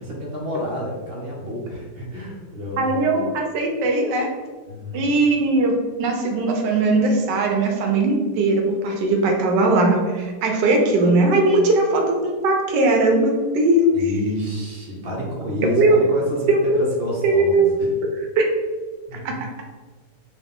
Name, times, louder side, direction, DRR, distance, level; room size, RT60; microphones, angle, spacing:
voice 1, 0.0-3.2 4.7-5.1 13.9-17.9 19.1-19.4, equal, 50° right, -2 dB, 0.7 m, -29 dB
voice 2, 2.8-4.3 4.9-5.7 6.0-13.9 15.8-16.0 16.5-16.8 17.2-17.7 18.4-18.5 19.2-19.3, right 2 dB, 90° right, 1 dB, 1.3 m, -19 dB
3.9 x 2.5 x 3.5 m, 1.4 s
omnidirectional pair, 1.8 m